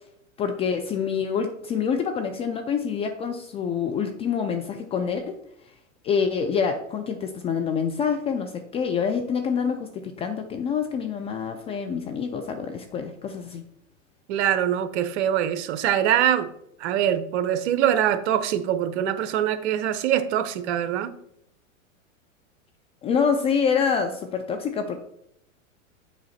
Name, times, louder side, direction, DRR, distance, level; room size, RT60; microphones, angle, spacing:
voice 1, 0.4-5.4 6.0-13.6 23.0-25.0, left 6 dB, 15° left, 0.3 m, -26 dB
voice 2, 14.3-16.5 16.8-21.1, right 10 dB, 55° right, 0.9 m, -23 dB
7.8 x 5.0 x 4.2 m
hypercardioid pair, 110°, 39 cm